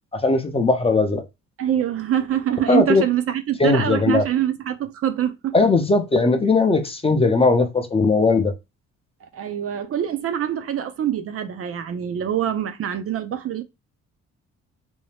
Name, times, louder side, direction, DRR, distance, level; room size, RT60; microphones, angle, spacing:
voice 1, 0.1-1.2 2.7-3.0 3.6-4.2 5.5-8.5, left 3 dB, 20° left, 0.5 m, -18 dB
voice 2, 1.6-5.5 9.3-13.6, right 10 dB, 50° right, 0.5 m, -24 dB
2.7 x 2.0 x 3.2 m
cardioid pair, 90°, 30 cm